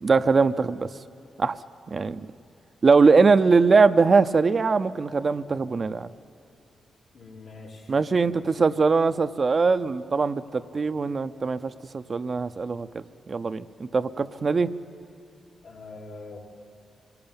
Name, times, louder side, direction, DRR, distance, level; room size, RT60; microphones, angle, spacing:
voice 1, 0.0-0.9 1.4-1.6 1.9-2.2 2.8-6.1 7.9-14.7, right 4 dB, 50° right, 11 dB, 0.6 m, -21 dB
voice 2, 7.1-7.9 8.4-8.5 14.4-14.5 15.6-16.4, left 3 dB, 80° left, -4 dB, 4.1 m, -43 dB
26.0 x 17.5 x 8.9 m, 2.5 s
cardioid pair, 60°, 0 cm